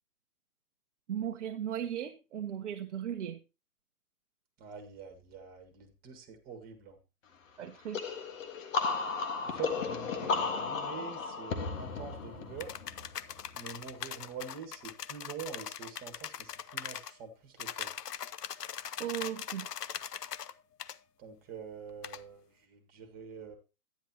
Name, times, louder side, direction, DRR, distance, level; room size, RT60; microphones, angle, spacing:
voice 1, 1.1-3.4 7.6-8.2 19.0-19.7, right 10 dB, 50° right, 5 dB, 0.9 m, -37 dB
voice 2, 4.6-7.0 9.4-12.7 13.5-17.9 21.2-23.5, right 6 dB, 20° right, 6 dB, 1.7 m, -45 dB
sound 1, 7.9-13.5, left 4 dB, 55° left, 1.6 m, -34 dB
sound 2, 12.6-17.1 17.6-20.5 20.8-21.0 22.0-22.2, left 9 dB, 80° left, 0.8 m, -41 dB
11.5 x 10.0 x 2.9 m, 0.29 s
hypercardioid pair, 140°, 47 cm